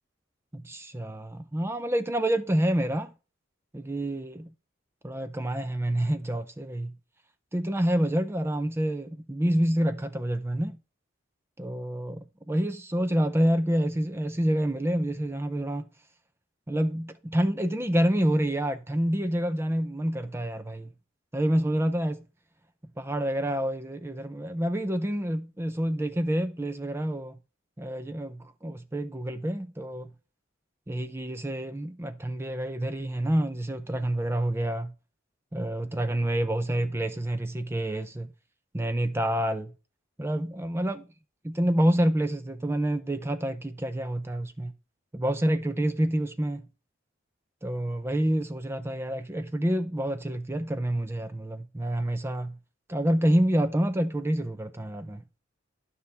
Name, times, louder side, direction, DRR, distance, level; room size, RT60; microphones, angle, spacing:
voice 1, 0.5-3.1 3.7-4.5 5.0-6.9 7.5-10.8 11.6-15.9 16.7-20.9 21.3-22.2 23.0-27.4 27.8-30.1 30.9-34.9 35.5-38.3 38.7-39.7 40.2-41.1 41.4-44.7 45.1-46.7 47.6-52.6 52.9-55.2, right 1 dB, 15° right, 0.4 m, -28 dB
12.0 x 5.4 x 3.4 m
head